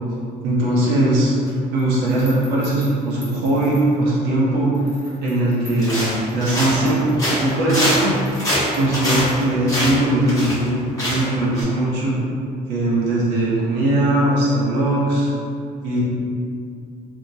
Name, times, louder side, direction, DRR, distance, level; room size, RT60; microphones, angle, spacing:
voice 1, 0.4-1.3 1.7-4.7 5.2-8.1 8.7-10.7 11.0-12.2 12.7-15.3 15.8-16.0, right 1 dB, 90° right, -7 dB, 0.8 m, -19 dB
sound 1, 1.5-4.3 4.7-9.9, left 1 dB, 10° right, 1.0 m, -45 dB
sound 2, 5.8-6.9 7.2-10.7 11.0-11.3 11.5-11.6, equal, 20° left, 1.0 m, -23 dB
2.9 x 2.9 x 2.5 m, 2.5 s
cardioid pair, 110°, 17 cm